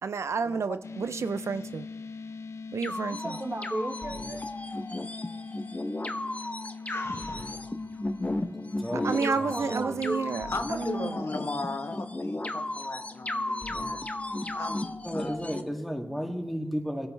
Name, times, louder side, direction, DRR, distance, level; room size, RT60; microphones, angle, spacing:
voice 1, 0.0-1.9 2.7-3.3 8.9-11.2, right 5 dB, 90° right, 12 dB, 0.4 m, -31 dB
sound 1, 0.8-16.4, left 4 dB, 85° left, 0.5 m, -43 dB
sound 2, 2.8-15.6, left 1 dB, 30° left, 0.9 m, -35 dB
voice 2, 3.1-4.4 9.2-10.3, right 1 dB, 35° right, 6 dB, 1.2 m, -34 dB
voice 3, 6.8-7.6 10.5-14.0 14.5-15.4, left 3 dB, 65° left, 6 dB, 1.1 m, -37 dB
voice 4, 8.8-9.1 9.4-9.9 15.0-17.1, equal, ahead, 1 dB, 2.4 m, -33 dB
26.0 x 9.8 x 3.3 m, 1.1 s
cardioid pair, 45°, 5 cm